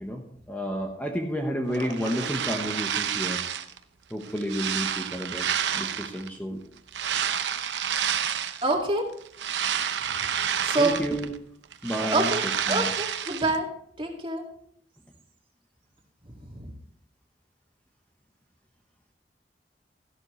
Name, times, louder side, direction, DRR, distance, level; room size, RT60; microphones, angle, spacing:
voice 1, 0.0-3.4 4.1-5.5 5.7-6.6 10.8-11.3 11.8-12.9, equal, 10° left, 2 dB, 1.0 m, -31 dB
Telephone, 1.7-2.8, equal, 40° left, 3.7 m, -39 dB
sound 1, 1.7-3.8 4.2-6.3 6.9-8.7 9.1-11.4 11.6-13.6, right 8 dB, 85° right, 0.8 m, -29 dB
voice 2, 8.6-9.0 10.6-10.9 12.1-12.4 12.7-13.7 14.0-14.4 16.5-16.7, right 2 dB, 30° right, 0 dB, 2.2 m, -25 dB
14.0 x 11.5 x 3.2 m, 0.66 s
head